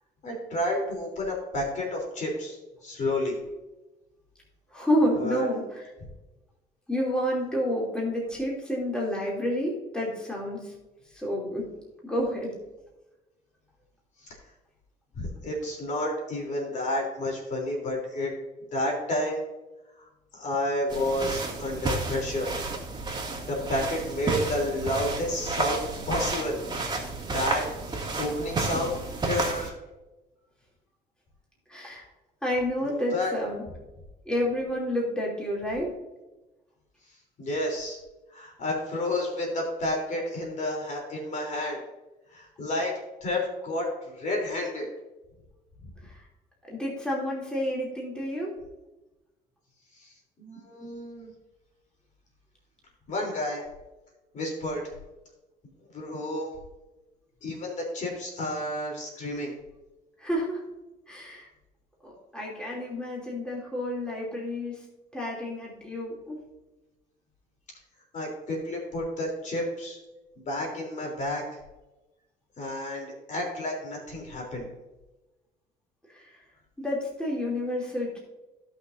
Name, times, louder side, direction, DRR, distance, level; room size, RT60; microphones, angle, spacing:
voice 1, 0.2-2.6 2.8-3.4 5.2-5.5 14.2-14.4 15.2-18.3 18.7-19.4 20.3-22.5 23.5-26.6 27.3-27.7 28.2-29.7 32.8-33.3 37.4-38.0 38.3-41.8 42.3-42.9 43.2-44.9 50.0-50.1 50.4-51.3 53.1-53.6 54.3-54.8 55.9-56.5 57.4-59.5 68.1-70.0 70.4-71.6 72.6-74.7, left 1 dB, 45° left, 0 dB, 3.5 m, -30 dB
voice 2, 4.7-5.8 6.9-10.8 11.1-11.7 12.0-12.5 31.7-32.0 32.4-33.6 34.2-35.9 46.0-46.3 46.7-48.5 60.2-60.6 61.1-61.5 62.0-64.8 65.1-66.4 76.1-76.4 76.8-78.2, equal, 5° left, -4 dB, 3.0 m, -29 dB
sound 1, 20.9-29.7, right 3 dB, 25° right, 2.2 m, -31 dB
17.0 x 6.0 x 2.7 m, 1.1 s
cardioid pair, 110°, 17 cm